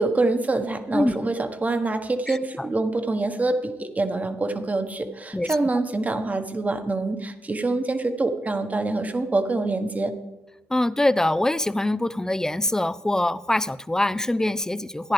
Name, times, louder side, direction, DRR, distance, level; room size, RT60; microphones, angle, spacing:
voice 1, 0.0-10.1, right 2 dB, 30° right, 7 dB, 1.2 m, -25 dB
voice 2, 0.9-1.3 2.3-2.7 5.3-5.6 10.7-15.1, left 1 dB, 10° left, 15 dB, 0.5 m, -24 dB
14.5 x 10.0 x 3.4 m, 1.1 s
supercardioid pair, 60°, 5 cm